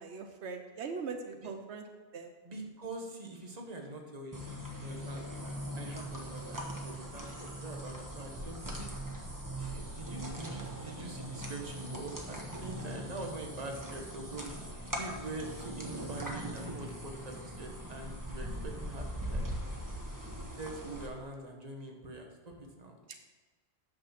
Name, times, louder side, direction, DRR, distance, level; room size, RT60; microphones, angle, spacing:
voice 1, 0.0-1.8 2.1-2.3 23.1-23.2, right 5 dB, 85° right, 6 dB, 1.1 m, -40 dB
voice 2, 2.4-4.4 4.8-5.3 5.8-8.9 9.6-14.5 14.9-19.4 20.5-23.2, right 2 dB, 40° right, 2 dB, 1.4 m, -44 dB
sound 1, 4.3-21.1, equal, 20° right, 1.2 m, -40 dB
8.8 x 6.4 x 5.9 m, 1.3 s
omnidirectional pair, 1.1 m